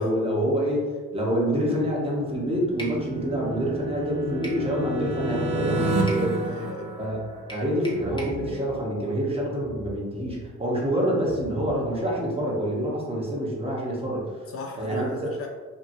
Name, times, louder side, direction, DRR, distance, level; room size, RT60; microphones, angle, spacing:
voice 1, 0.0-6.4 7.0-7.2 7.5-14.4 14.8-15.3, equal, 20° right, -4 dB, 0.9 m, -27 dB
sound 1, 2.1-7.7, right 2 dB, 90° right, 0.7 m, -29 dB
sound 2, 2.8-3.0 4.4-4.7 6.1-6.3 7.5-8.4, right 1 dB, 15° left, 0.7 m, -39 dB
voice 2, 6.4-7.0 14.5-15.5, left 4 dB, 50° left, 1 dB, 0.4 m, -38 dB
sound 3, 7.5-7.6 7.9-9.3 9.6-10.9 11.2-12.2, left 1 dB, 80° left, 0.7 m, -42 dB
2.8 x 2.6 x 2.6 m, 1.4 s
cardioid pair, 90°, 30 cm